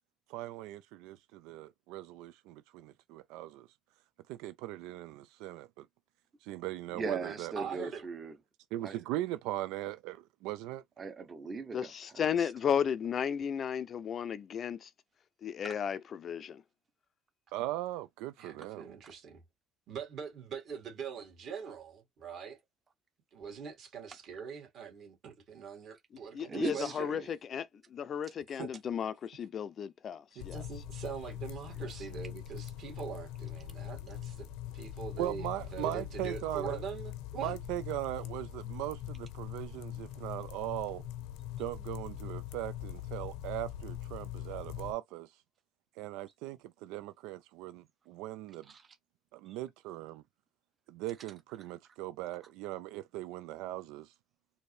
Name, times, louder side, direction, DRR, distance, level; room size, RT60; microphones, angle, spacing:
voice 1, 0.3-3.7 4.3-5.9 6.4-7.7 8.7-10.8 17.5-18.8 35.2-36.8 37.4-41.0 41.6-45.4 46.0-48.7 49.3-50.2 50.9-54.1, right 15 dB, 80° right, 0.3 m, -39 dB
voice 2, 6.9-8.4 8.8-9.0 11.0-12.5 15.6-15.7 26.5-27.3 31.9-32.1 48.7-49.0 49.5-49.6, right 4 dB, 30° right, 0.9 m, -39 dB
voice 3, 7.6-8.1 18.4-19.4 19.9-22.6 23.3-27.2 28.6-28.7 30.4-34.5 34.7-37.5, right 7 dB, 50° right, 2.1 m, -43 dB
voice 4, 11.7-14.9 15.4-16.6 26.3-30.6, left 8 dB, 40° left, 0.5 m, -34 dB
sound 1, 30.4-44.9, left 11 dB, 85° left, 0.7 m, -42 dB
4.4 x 2.7 x 3.2 m
cardioid pair, 115°, 0 cm